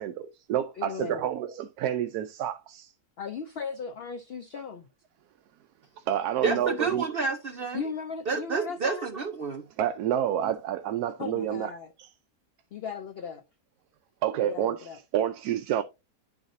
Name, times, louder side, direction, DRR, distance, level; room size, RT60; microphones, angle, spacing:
voice 1, 0.0-2.9 6.1-7.1 9.8-11.7 14.2-15.8, right 10 dB, 75° right, 1.1 m, -29 dB
voice 2, 0.8-1.3 3.2-4.9 6.5-6.6 7.7-9.1 11.2-11.9 12.7-13.4 14.4-15.0, left 6 dB, 80° left, 0.5 m, -37 dB
voice 3, 6.4-7.9 8.3-9.7, right 4 dB, 55° right, 0.6 m, -29 dB
10.5 x 4.8 x 2.6 m
omnidirectional pair, 1.7 m